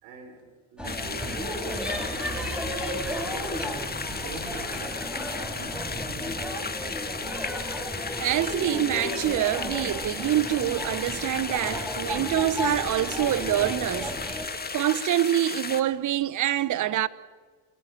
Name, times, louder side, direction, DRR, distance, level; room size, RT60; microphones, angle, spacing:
voice 1, 0.0-2.9 3.2-3.8 4.2-6.7, right 5 dB, 75° right, 3.8 m, -46 dB
sound 1, 0.8-15.8, left 4 dB, 20° left, 1.9 m, -35 dB
sound 2, 0.8-14.5, equal, ahead, 5.4 m, -34 dB
voice 2, 8.2-14.2 14.7-17.1, right 12 dB, 45° right, 1.0 m, -26 dB
28.5 x 16.5 x 8.8 m
hypercardioid pair, 70°, 43 cm